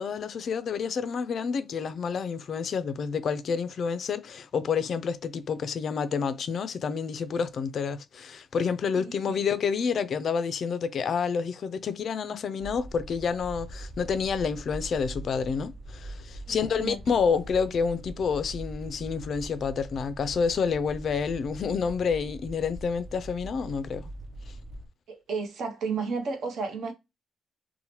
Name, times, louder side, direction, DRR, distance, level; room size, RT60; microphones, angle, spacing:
voice 1, 0.0-24.1, left 6 dB, 55° left, 0.3 m, -29 dB
voice 2, 8.9-9.4 16.5-17.0 25.1-26.9, right 4 dB, 65° right, 0.8 m, -33 dB
sound 1, 12.6-24.9, right 1 dB, 40° right, 0.4 m, -42 dB
2.8 x 2.1 x 2.9 m
cardioid pair, 125°, 0 cm